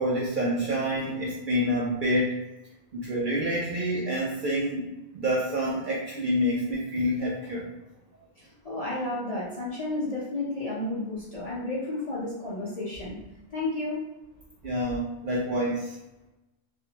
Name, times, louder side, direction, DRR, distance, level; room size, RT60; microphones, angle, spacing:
voice 1, 0.0-2.3 2.9-4.8 5.1-7.7 14.6-16.0, equal, 60° right, -4 dB, 0.5 m, -27 dB
voice 2, 8.4-13.1 13.5-14.0, left 2 dB, 45° left, -8 dB, 0.5 m, -32 dB
2.5 x 2.1 x 2.8 m, 0.99 s
omnidirectional pair, 1.2 m